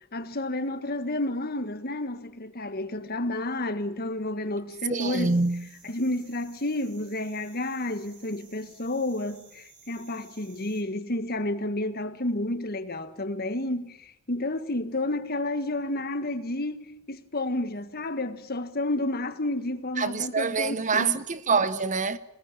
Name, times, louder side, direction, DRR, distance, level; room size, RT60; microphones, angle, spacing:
voice 1, 0.1-5.4 5.8-21.2, left 1 dB, 45° left, 1.6 m, -31 dB
voice 2, 4.9-5.7 20.0-22.2, right 4 dB, 35° right, 1.1 m, -26 dB
sound 1, 5.0-10.8, right 5 dB, 50° right, 6.0 m, -55 dB
26.0 x 19.5 x 9.9 m
head